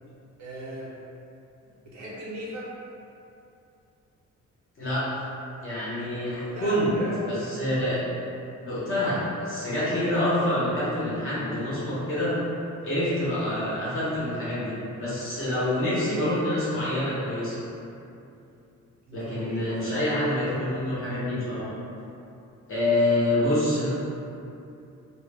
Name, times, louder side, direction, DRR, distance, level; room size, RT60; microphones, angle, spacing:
voice 1, 0.4-0.9 1.8-2.7 6.4-7.1 19.1-20.0, right 1 dB, 65° right, -6 dB, 0.6 m, -38 dB
voice 2, 4.8-5.2 5.6-6.9 7.3-8.0 8.6-12.3 12.8-17.6 19.1-21.7 22.7-23.9, left 1 dB, 45° left, -9 dB, 0.8 m, -26 dB
2.1 x 2.0 x 3.2 m, 2.7 s
wide cardioid pair, 175°, 30 cm